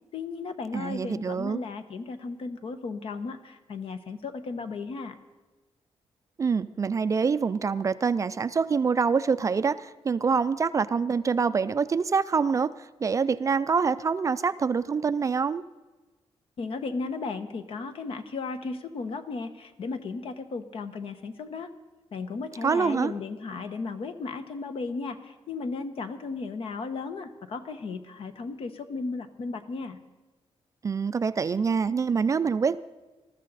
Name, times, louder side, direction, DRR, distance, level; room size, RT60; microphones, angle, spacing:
voice 1, 0.1-5.1 16.6-21.7 22.1-30.0, left 4 dB, 60° left, 9 dB, 1.1 m, -35 dB
voice 2, 0.7-1.6 6.4-12.7 13.0-15.6 22.6-23.1 30.8-32.8, right 5 dB, 30° right, 14 dB, 0.4 m, -25 dB
21.0 x 13.5 x 4.1 m, 1.2 s
wide cardioid pair, 165°, 10 cm